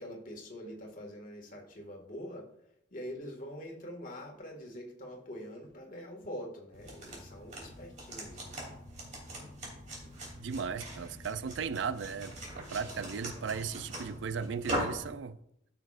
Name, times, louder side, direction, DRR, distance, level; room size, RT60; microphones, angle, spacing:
voice 1, 0.0-2.5 2.9-8.6, equal, 45° left, 1.9 m, -44 dB
sound 1, 6.7-15.1, right 1 dB, 40° right, 3.0 m, -41 dB
voice 2, 10.4-15.4, right 6 dB, 75° right, 0.4 m, -36 dB
14.0 x 6.9 x 2.5 m
head